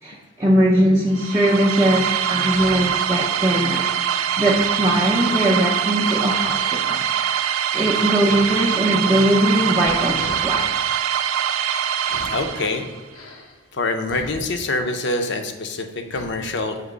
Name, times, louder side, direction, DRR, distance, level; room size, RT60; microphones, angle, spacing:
voice 1, 0.0-7.4 7.7-11.0, right 1 dB, 15° right, -4 dB, 0.5 m, -20 dB
sound 1, 1.1-13.0, right 9 dB, 75° right, 0.4 m, -23 dB
sound 2, 1.9-2.9 3.4-5.2 5.4-6.0 6.4-6.8 7.3-7.9 8.2-8.5 8.8-10.6 12.1-12.6 13.1-14.8 15.1-15.4 16.1-16.3, left 2 dB, 85° left, 0.8 m, -41 dB
voice 2, 12.3-12.8 13.8-15.9 16.1-16.7, left 2 dB, 55° left, 6 dB, 0.6 m, -25 dB
6.5 x 2.9 x 4.9 m, 1.4 s
head